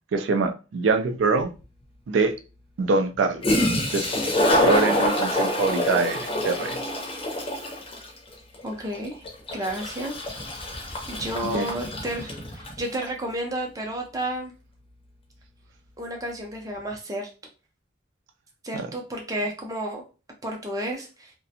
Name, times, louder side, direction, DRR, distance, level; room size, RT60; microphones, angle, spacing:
voice 1, 0.1-1.5 2.1-2.3 2.8-3.4 3.9-4.1 4.6-6.8 11.5-11.7 18.7-18.9, right 3 dB, 75° right, 7 dB, 0.4 m, -24 dB
Toilet flush, 1.4-1.5 3.1-3.2 3.4-12.8, left 1 dB, 30° left, 0.6 m, -26 dB
voice 2, 8.6-9.2 9.5-10.1 11.1-14.5 16.0-17.3 18.6-20.0 20.4-21.3, right 1 dB, 20° right, 1 dB, 0.5 m, -31 dB
2.4 x 2.1 x 2.7 m, 0.33 s
head